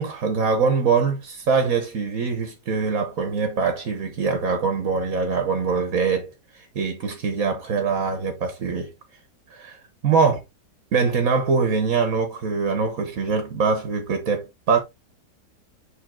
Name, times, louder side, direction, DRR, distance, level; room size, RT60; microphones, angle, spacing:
voice 1, 0.0-8.9 9.5-9.8 10.0-10.4 10.9-14.8, right 5 dB, 55° right, 1.5 m, -23 dB
6.6 x 3.8 x 3.7 m
omnidirectional pair, 1.9 m